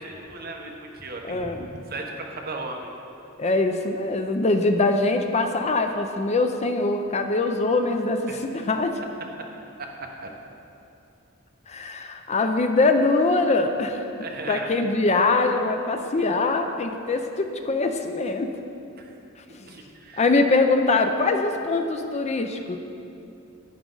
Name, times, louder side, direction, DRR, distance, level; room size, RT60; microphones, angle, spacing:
voice 1, 0.0-2.9 8.3-8.4 9.4-9.5 9.8-10.3 14.1-14.7 19.0-19.1 19.6-20.3, right 2 dB, 50° right, 1 dB, 1.1 m, -36 dB
voice 2, 1.3-1.7 3.4-9.0 11.7-14.0 14.5-18.5 19.5-19.7 20.2-22.8, left 3 dB, 35° left, 6 dB, 0.5 m, -23 dB
11.0 x 9.4 x 3.9 m, 2.7 s
head